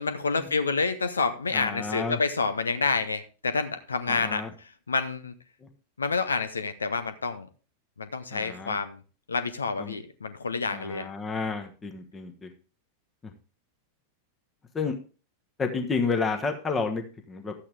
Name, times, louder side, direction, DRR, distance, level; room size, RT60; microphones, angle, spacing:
voice 1, 0.0-5.4 6.0-7.5 8.0-9.0 9.3-11.1, left 4 dB, 75° left, 11 dB, 0.7 m, -28 dB
voice 2, 1.5-2.2 4.1-4.5 5.6-5.7 8.3-8.8 9.8-10.0 10.7-12.5 13.2-13.3 14.7-15.0 15.6-17.5, left 4 dB, 20° left, 5 dB, 1.3 m, -31 dB
12.0 x 8.5 x 3.5 m, 0.36 s
figure-of-eight pair, 90°, 0 cm